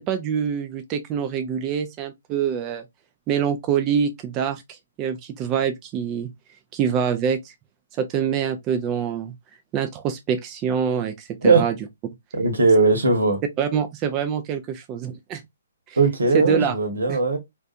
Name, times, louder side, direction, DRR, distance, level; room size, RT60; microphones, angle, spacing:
voice 1, 0.0-2.8 3.3-6.3 6.7-7.5 8.0-9.3 9.7-11.7 13.6-15.4 15.9-16.0 16.4-16.8 17.1-17.2, right 7 dB, 25° right, 0.3 m, -25 dB
voice 2, 12.3-13.4 16.0-17.4, right 3 dB, 85° right, 1.0 m, -19 dB
2.5 x 2.2 x 2.4 m
hypercardioid pair, 135°, 0 cm